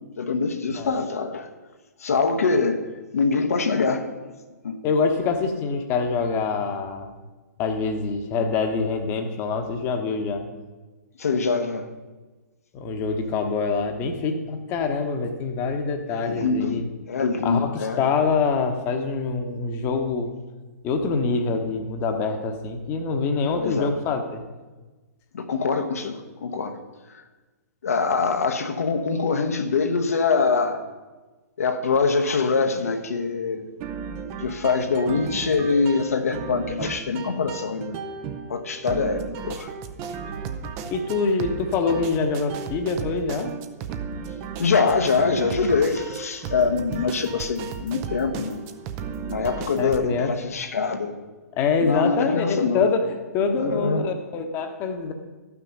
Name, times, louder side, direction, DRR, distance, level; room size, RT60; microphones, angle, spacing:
voice 1, 0.2-1.5 2.0-2.8 3.1-4.1 4.6-4.8 11.2-11.8 16.1-18.0 23.6-23.9 25.3-26.8 27.8-30.8 31.6-33.7 34.4-38.0 38.5-39.7 44.6-48.6 49.2-51.1 51.8-52.8 53.5-54.1, left 4 dB, 60° left, 6 dB, 1.0 m, -24 dB
voice 2, 4.8-7.2 7.6-10.4 12.7-16.9 17.4-20.3 20.8-24.4 40.9-43.5 49.8-50.3 51.6-55.1, left 4 dB, 25° left, 6 dB, 1.1 m, -25 dB
sound 1, 33.8-50.0, right 6 dB, 25° right, 0.6 m, -35 dB
13.0 x 6.1 x 5.4 m, 1.2 s
figure-of-eight pair, 120°, 9 cm